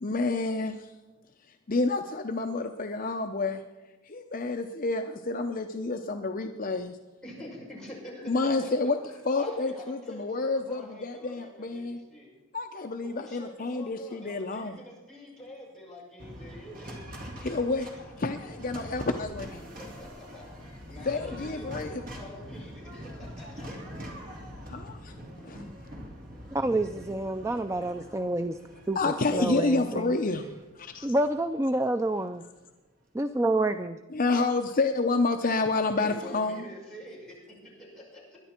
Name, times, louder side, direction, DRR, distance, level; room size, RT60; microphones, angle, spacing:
voice 1, 0.0-0.9 1.7-3.6 4.1-7.0 8.3-9.0 9.3-12.0 12.5-14.8 17.4-19.6 21.0-22.0 24.7-25.1 25.4-25.6 28.9-30.5 30.8-31.1 34.1-36.6, left 3 dB, 40° left, 5 dB, 0.7 m, -29 dB
voice 2, 7.2-12.3 13.0-17.0 19.8-21.8 22.1-23.7 36.0-38.4, left 1 dB, 5° left, -6 dB, 6.4 m, -46 dB
sound 1, 16.2-32.4, equal, 40° right, 3.0 m, -44 dB
voice 3, 26.5-28.6 28.9-29.0 29.3-30.1 31.0-32.4 33.1-34.0, right 1 dB, 15° right, 9 dB, 0.4 m, -28 dB
21.5 x 11.0 x 4.4 m, 1.1 s
head